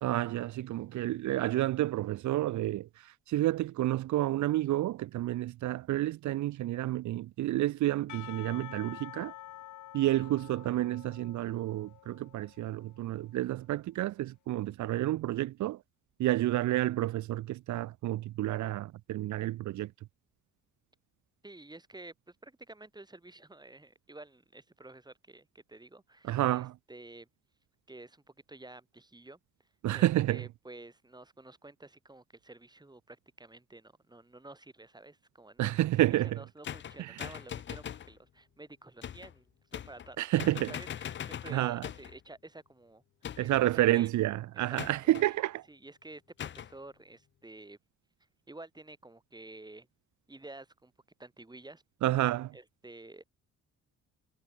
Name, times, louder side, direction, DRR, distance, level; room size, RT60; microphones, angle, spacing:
voice 1, 0.0-9.3 9.9-15.8 16.2-19.9 26.2-26.7 29.8-30.4 35.6-36.4 37.0-37.3 40.2-40.7 41.5-41.8 43.4-45.7 52.0-52.5, right 15 dB, 70° right, 0.7 m, -30 dB
Percussion / Church bell, 8.1-13.2, left 13 dB, 80° left, 6.4 m, -49 dB
voice 2, 21.4-27.3 27.9-29.4 29.9-35.7 36.0-40.3 40.7-43.0 43.4-44.1 44.7-44.9 45.2-45.3 45.7-47.8 48.5-49.9 50.3-50.9 51.2-51.8 52.5-53.2, right 2 dB, 15° right, 5.3 m, -51 dB
sound 1, 36.6-38.1 39.0-39.3 39.7-40.1 40.4-42.2 43.2-43.7 44.8-45.3 46.4-46.7, left 9 dB, 40° left, 0.6 m, -41 dB
cardioid pair, 90°, 30 cm